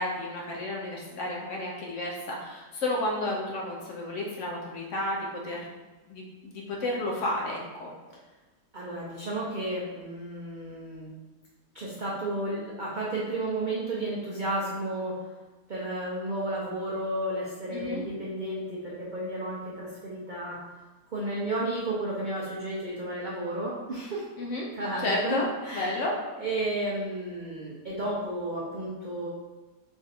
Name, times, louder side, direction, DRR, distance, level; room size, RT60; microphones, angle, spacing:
voice 1, 0.0-5.6 6.1-7.9 17.7-18.0 24.4-24.7 25.0-25.5 25.7-26.1, left 1 dB, 65° left, -2 dB, 0.8 m, -31 dB
voice 2, 8.7-11.1 11.7-15.2 15.7-20.6 21.1-24.3 24.7-25.4 25.6-26.0 26.4-29.3, right 1 dB, 85° right, -6 dB, 0.4 m, -32 dB
3.5 x 2.5 x 4.1 m, 1.2 s
omnidirectional pair, 1.7 m